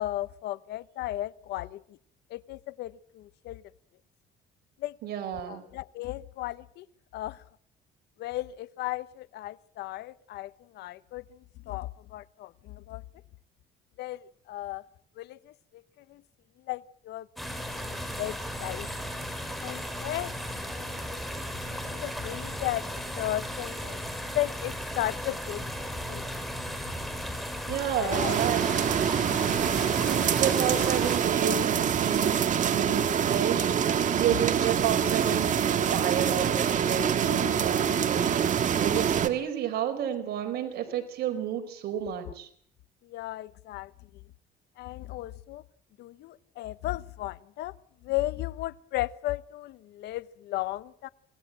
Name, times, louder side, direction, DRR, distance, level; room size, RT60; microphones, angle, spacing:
voice 1, 0.0-2.0 2.3-3.6 4.8-5.0 5.5-6.9 7.1-7.4 8.2-13.0 14.0-14.8 15.2-16.2 16.6-17.3 17.7-17.9 18.2-18.9 19.6-20.3 20.8-24.0 24.3-25.6 26.1-26.3 27.9-28.4 42.3-42.4 43.0-44.2 44.8-45.6 46.0-47.8 48.0-51.1, left 16 dB, 80° left, 17 dB, 1.0 m, -35 dB
voice 2, 5.0-5.6 27.7-28.6 29.9-32.4 32.7-33.6 34.1-42.5, right 9 dB, 70° right, 5 dB, 4.7 m, -31 dB
sound 1, 17.4-31.2, equal, ahead, 5.2 m, -36 dB
sound 2, 28.1-39.3, right 8 dB, 50° right, 1.9 m, -25 dB
26.0 x 18.5 x 7.6 m, 0.63 s
cardioid pair, 110°, 17 cm